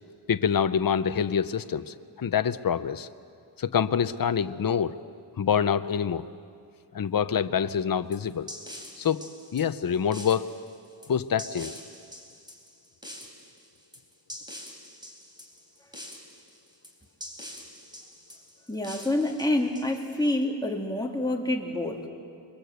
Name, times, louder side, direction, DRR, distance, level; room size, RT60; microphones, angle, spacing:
voice 1, 0.3-3.1 3.6-4.9 5.4-6.2 6.9-8.5 9.0-9.2 9.5-10.5 11.1-11.7, left 7 dB, 50° left, 11 dB, 0.7 m, -26 dB
sound 1, 8.1-20.3, equal, 10° right, 3.6 m, -45 dB
voice 2, 18.7-22.1, left 1 dB, 10° left, 0 dB, 2.6 m, -27 dB
28.5 x 22.5 x 8.0 m, 2.2 s
wide cardioid pair, 115°, 44 cm